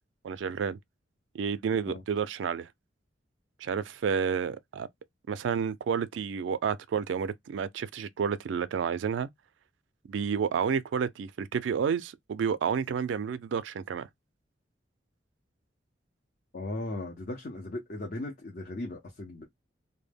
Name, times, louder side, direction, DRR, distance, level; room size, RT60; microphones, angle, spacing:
voice 1, 0.2-0.8 1.3-2.7 3.6-4.9 5.3-9.3 10.1-14.1, right 6 dB, 85° right, 0.3 m, -30 dB
voice 2, 16.5-19.4, left 2 dB, 50° left, 0.7 m, -37 dB
2.2 x 2.0 x 3.3 m
head